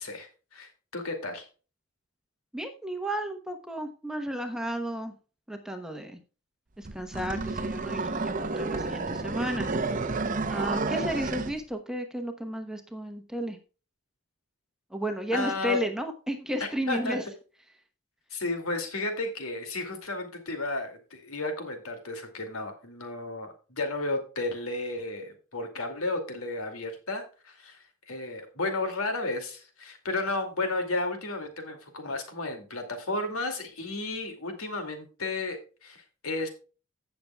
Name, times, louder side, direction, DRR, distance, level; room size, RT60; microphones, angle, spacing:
voice 1, 0.0-1.5 15.3-15.8 16.9-17.2 18.3-36.5, left 2 dB, 80° left, 5 dB, 2.4 m, -33 dB
voice 2, 2.5-5.1 5.5-6.2 6.8-10.0 10.5-13.6 14.9-17.2, equal, 5° right, 5 dB, 1.0 m, -33 dB
sound 1, 6.9-11.6, right 3 dB, 40° right, 0.7 m, -31 dB
16.0 x 6.9 x 2.3 m, 0.35 s
head